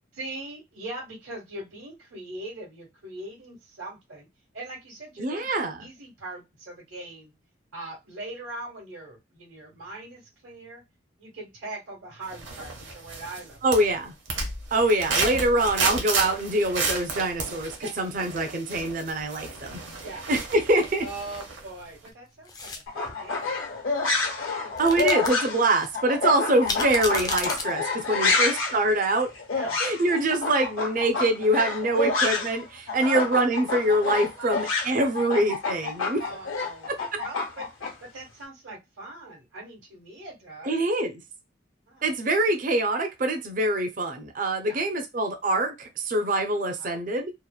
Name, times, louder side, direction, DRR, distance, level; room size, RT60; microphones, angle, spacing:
voice 1, 0.1-4.3 4.5-7.3 7.7-10.8 11.2-13.9 17.8-18.0 20.0-20.3 20.6-20.7 21.0-25.1 26.4-26.5 28.2-28.6 29.5-29.8 33.0-33.2 34.3-34.6 35.2-35.3 36.2-36.9 37.2-37.7 38.1-40.7 41.9-42.1 44.6-44.8 46.8-47.0, right 2 dB, 85° right, 1.1 m, -41 dB
voice 2, 5.2-5.8 13.6-14.1 14.7-19.8 20.3-21.0 24.8-29.3 29.8-36.2 36.9-37.2 40.7-41.1 42.0-47.3, right 1 dB, 40° right, 0.4 m, -24 dB
sound 1, 12.3-13.4 13.7-21.7 22.0-22.1, right 3 dB, 65° right, 0.8 m, -32 dB
sound 2, 22.5-22.8 24.8-25.3 25.8-25.9 26.7-27.6, left 4 dB, 20° left, 0.3 m, -31 dB
sound 3, 22.9-32.6 32.9-37.9, left 4 dB, 85° left, 0.9 m, -28 dB
2.9 x 2.1 x 2.3 m
head